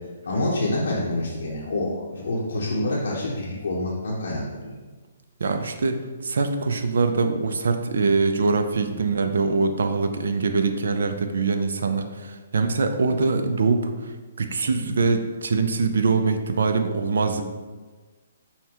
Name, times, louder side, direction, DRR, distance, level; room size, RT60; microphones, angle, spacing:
voice 1, 0.2-4.7 5.4-5.6 8.9-9.1, left 1 dB, 80° left, -6 dB, 0.7 m, -27 dB
voice 2, 5.4-13.9 14.4-17.4, right 4 dB, 75° right, 7 dB, 0.4 m, -23 dB
5.5 x 2.2 x 2.9 m, 1.4 s
hypercardioid pair, 150°, 0 cm